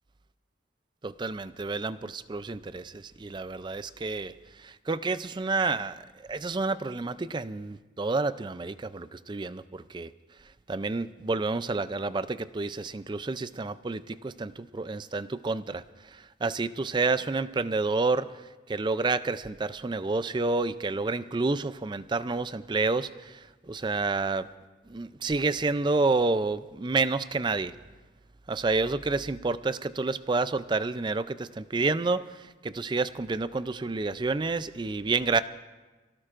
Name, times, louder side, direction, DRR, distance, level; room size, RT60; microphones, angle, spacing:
voice 1, 1.0-6.0 6.3-10.1 10.7-18.3 18.7-24.5 24.9-27.7 28.5-35.4, right 3 dB, 25° right, 14 dB, 0.4 m, -29 dB
28.0 x 17.5 x 2.5 m, 1.2 s
head